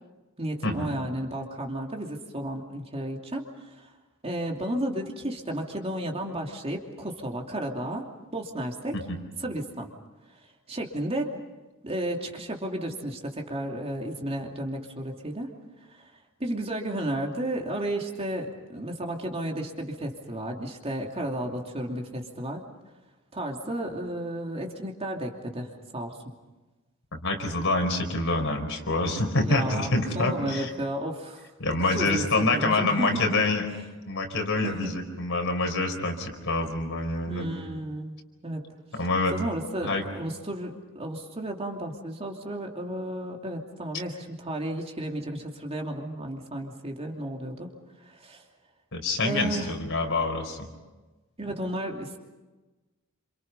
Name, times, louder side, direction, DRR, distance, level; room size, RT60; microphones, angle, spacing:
voice 1, 0.4-3.9 4.2-8.1 8.3-9.0 9.4-9.9 10.7-11.4 11.8-15.5 15.9-16.1 16.4-22.6 23.3-26.2 29.4-33.4 34.6-34.9 37.3-38.2 38.4-38.6 39.3-47.7 48.0-48.4 49.2-49.7 51.4-52.2, right 1 dB, 30° right, 1 dB, 2.8 m, -33 dB
voice 2, 27.1-30.7 31.6-33.7 34.1-37.5 38.9-39.4 39.8-40.0 48.9-50.7, left 2 dB, 65° left, 4 dB, 4.7 m, -26 dB
29.5 x 27.0 x 5.5 m, 1.2 s
head